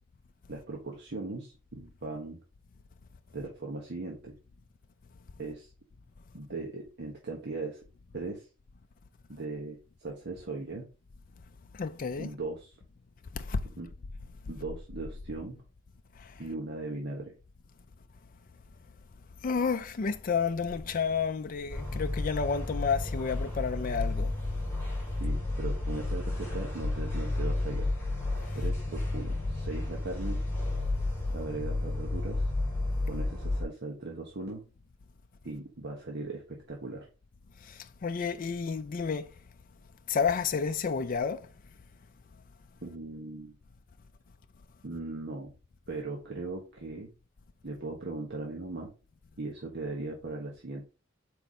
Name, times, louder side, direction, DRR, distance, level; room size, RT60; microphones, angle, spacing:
voice 1, 0.5-2.4 3.3-4.3 5.4-5.7 6.3-7.8 8.1-8.5 9.3-10.8 12.2-12.7 13.8-13.9 14.5-15.6 16.4-17.3 25.2-27.9 28.5-30.4 31.3-32.4 33.1-34.6 35.4-37.1 42.8-43.5 44.8-45.5 45.9-47.1 47.6-48.9 49.4-50.9, right 2 dB, 55° right, 1.2 m, -38 dB
voice 2, 11.7-12.3 13.3-13.6 16.2-16.3 19.4-24.3 37.7-39.3 40.1-41.5, left 5 dB, 45° left, 0.4 m, -30 dB
sound 1, 21.7-33.6, left 2 dB, 15° left, 3.7 m, -32 dB
5.0 x 4.6 x 4.1 m
head